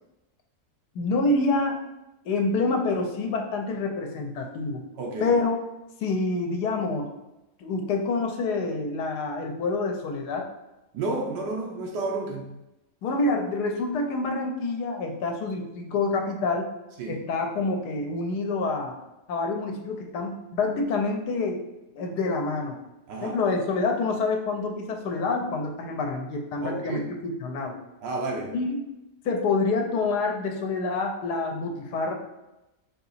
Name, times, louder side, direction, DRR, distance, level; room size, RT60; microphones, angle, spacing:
voice 1, 0.9-1.8 2.3-4.8 5.2-5.6 6.0-7.1 7.6-10.5 13.0-16.7 17.1-19.0 19.3-21.6 21.9-22.8 23.2-27.8 28.5-28.8 29.2-32.1, left 3 dB, 75° left, 3 dB, 1.2 m, -27 dB
voice 2, 5.0-5.4 10.9-12.5 17.0-17.2 23.1-23.4 26.6-27.0 28.0-28.5, right 2 dB, 85° right, -1 dB, 1.4 m, -31 dB
4.2 x 2.8 x 4.0 m, 0.94 s
omnidirectional pair, 1.8 m